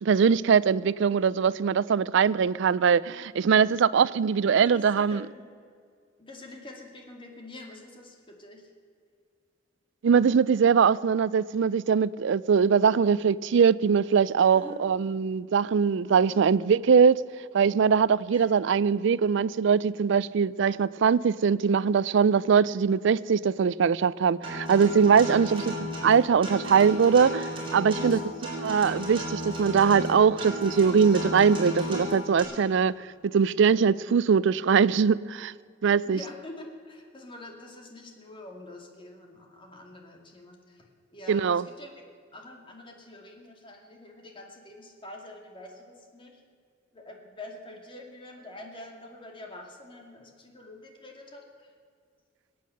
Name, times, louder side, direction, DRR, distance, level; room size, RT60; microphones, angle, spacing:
voice 1, 0.0-5.2 10.0-17.2 17.5-25.7 26.0-28.2 28.6-32.9 33.2-35.5 35.8-36.2 41.3-41.6, right 6 dB, 65° right, 0.4 m, -22 dB
voice 2, 4.4-5.5 6.2-8.7 14.5-14.8 16.1-16.4 18.3-18.5 25.3-25.5 27.9-28.6 36.1-40.9 41.1-42.0 42.3-46.4 46.9-51.7, left 1 dB, 25° left, 2.4 m, -46 dB
Acoustic guitar, 24.4-32.4, left 1 dB, 25° right, 4.2 m, -34 dB
21.0 x 8.5 x 7.8 m
head